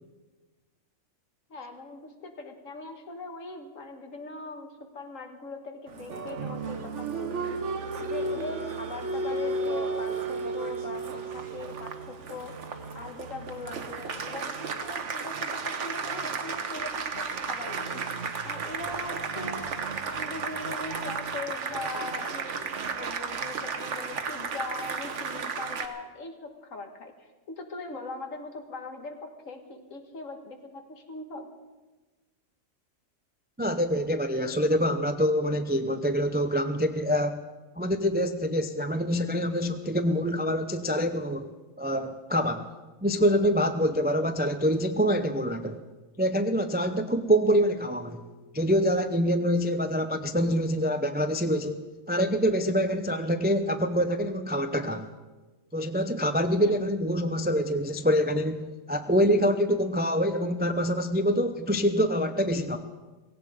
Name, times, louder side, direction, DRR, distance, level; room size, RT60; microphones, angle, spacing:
voice 1, 1.5-7.6 8.0-12.6 12.9-18.0 18.4-31.5 56.6-56.8, left 3 dB, 65° left, 5 dB, 2.0 m, -40 dB
Applause, 5.9-25.9, right 4 dB, 60° right, 1.4 m, -33 dB
voice 2, 33.6-37.4 37.8-41.5 41.8-42.7 43.0-45.8 46.2-48.2 48.5-55.1 55.7-62.8, equal, 15° right, 9 dB, 0.4 m, -25 dB
17.0 x 16.5 x 5.0 m, 1.2 s
omnidirectional pair, 1.4 m